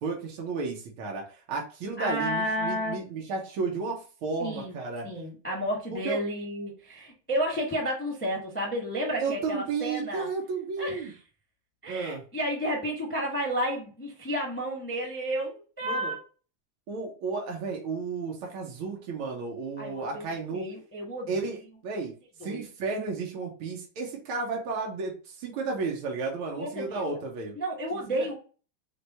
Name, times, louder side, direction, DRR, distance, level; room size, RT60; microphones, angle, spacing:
voice 1, 0.0-5.1 5.9-6.2 9.2-11.1 11.9-12.2 15.8-16.1 16.9-20.6 21.3-22.1 22.4-27.6 27.9-28.3, right 4 dB, 80° right, 0 dB, 1.8 m, -33 dB
voice 2, 2.0-3.1 4.4-4.7 5.0-10.3 10.8-11.1 11.8-16.2 19.8-21.3 22.4-22.6 26.6-27.2 27.5-28.3, equal, 5° left, -1 dB, 0.9 m, -31 dB
4.8 x 2.3 x 4.1 m, 0.37 s
omnidirectional pair, 2.3 m